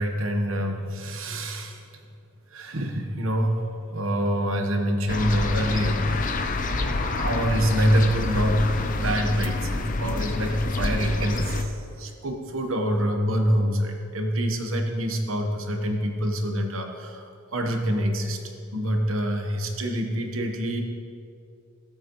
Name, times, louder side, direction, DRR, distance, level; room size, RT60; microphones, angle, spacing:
voice 1, 0.0-1.8 2.5-3.6 3.9-6.0 6.8-8.7 8.9-11.7 12.0-17.2 17.5-20.8, equal, 65° right, 3 dB, 1.1 m, -26 dB
sound 1, 5.1-11.6, left 2 dB, 35° left, 0.5 m, -28 dB
16.5 x 8.1 x 3.1 m, 2.5 s
head